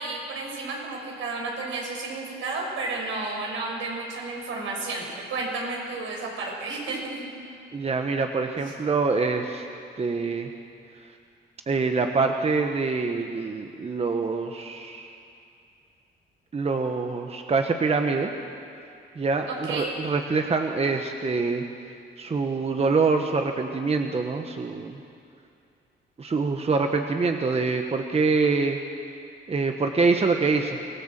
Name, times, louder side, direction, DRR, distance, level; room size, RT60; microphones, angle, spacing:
voice 1, 0.0-7.3 19.5-19.9, right 3 dB, 80° right, -1 dB, 6.1 m, -32 dB
voice 2, 7.7-9.6 10.0-10.5 11.7-15.1 16.5-18.3 19.2-21.6 22.2-25.0 26.2-28.8 29.5-30.8, right 4 dB, 30° right, 4 dB, 1.4 m, -25 dB
25.0 x 16.5 x 7.6 m, 2.4 s
cardioid pair, 90°, 20 cm